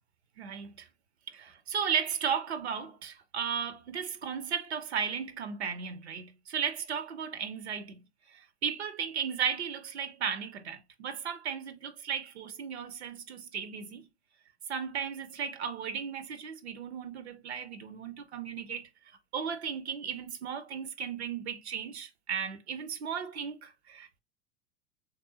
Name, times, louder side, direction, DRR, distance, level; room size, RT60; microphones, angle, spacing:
voice 1, 0.4-0.9 1.3-8.0 8.3-14.1 14.7-18.9 19.3-24.2, right 7 dB, 70° right, 0.6 m, -35 dB
3.4 x 2.5 x 2.6 m
figure-of-eight pair, 80°, 34 cm